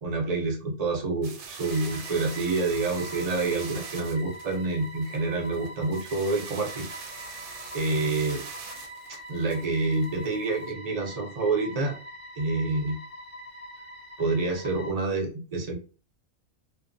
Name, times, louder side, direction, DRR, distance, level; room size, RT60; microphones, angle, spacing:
voice 1, 0.0-6.9 7.7-8.4 9.3-12.0 12.3-13.0 14.2-15.7, right 3 dB, 45° right, 1 dB, 0.5 m, -27 dB
sound 1, 1.2-10.6, right 5 dB, 85° right, 1.1 m, -43 dB
sound 2, 1.6-14.9, equal, 40° left, 0.9 m, -44 dB
2.7 x 2.1 x 2.5 m, 0.34 s
omnidirectional pair, 1.5 m